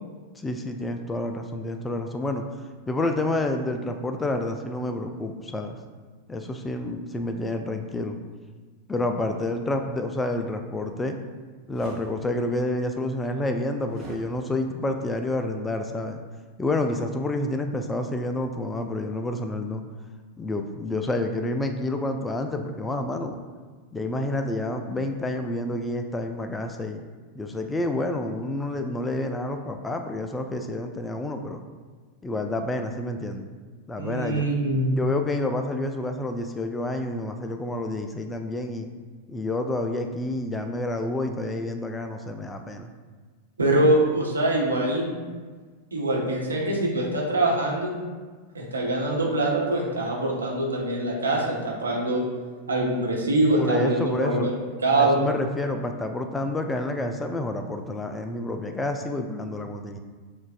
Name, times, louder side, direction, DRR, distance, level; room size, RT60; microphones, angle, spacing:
voice 1, 0.4-2.4 2.9-5.8 6.3-8.2 8.9-11.2 11.7-16.2 16.6-19.8 20.4-23.4 23.9-27.0 27.3-31.6 32.2-33.5 33.9-34.4 34.9-38.9 39.3-42.9 53.6-54.5 55.0-60.0, left 2 dB, 10° left, 5 dB, 0.3 m, -29 dB
sound 1, 11.7-12.1 13.9-14.2, right 2 dB, 15° right, 1.2 m, -43 dB
voice 2, 34.0-34.9 43.6-45.2 45.9-47.9 48.5-52.2 52.7-54.5 54.8-55.2, right 1 dB, 75° right, -3 dB, 0.9 m, -24 dB
7.0 x 2.5 x 2.5 m, 1.4 s
figure-of-eight pair, 90°, 0 cm